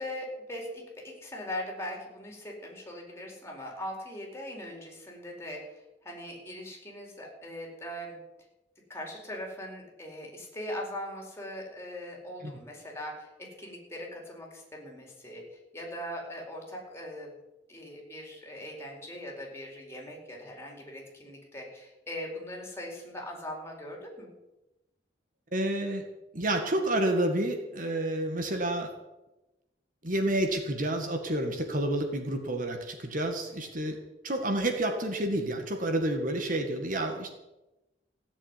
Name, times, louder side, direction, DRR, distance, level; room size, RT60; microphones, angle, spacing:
voice 1, 0.0-8.2 8.9-17.4 17.7-24.3, left 1 dB, 15° left, 0 dB, 4.4 m, -40 dB
voice 2, 25.5-26.0 26.3-28.9 30.0-34.0 34.2-37.3, right 1 dB, 50° right, 4 dB, 1.9 m, -29 dB
16.5 x 7.3 x 10.0 m, 0.99 s
head